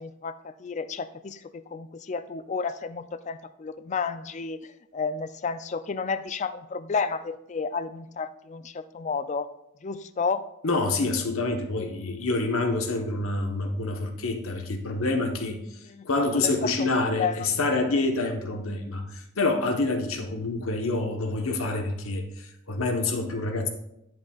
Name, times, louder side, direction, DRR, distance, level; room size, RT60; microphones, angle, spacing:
voice 1, 0.0-9.5 9.8-10.4 15.9-16.1 16.3-16.9 17.2-17.4, left 5 dB, 35° left, 12 dB, 0.4 m, -31 dB
voice 2, 10.6-23.7, left 2 dB, 75° left, 5 dB, 1.1 m, -27 dB
10.5 x 7.8 x 2.4 m, 0.83 s
head